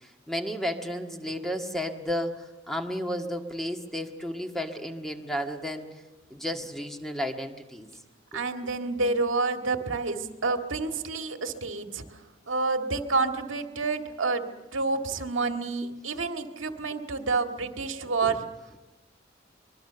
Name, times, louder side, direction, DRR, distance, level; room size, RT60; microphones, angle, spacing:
voice 1, 0.0-5.9 6.3-7.9 8.3-8.4 18.2-18.4, equal, ahead, 3 dB, 1.8 m, -33 dB
voice 2, 8.3-12.0 12.5-14.5 14.7-18.4, right 3 dB, 85° right, 5 dB, 1.9 m, -29 dB
24.5 x 22.5 x 6.9 m, 1.1 s
head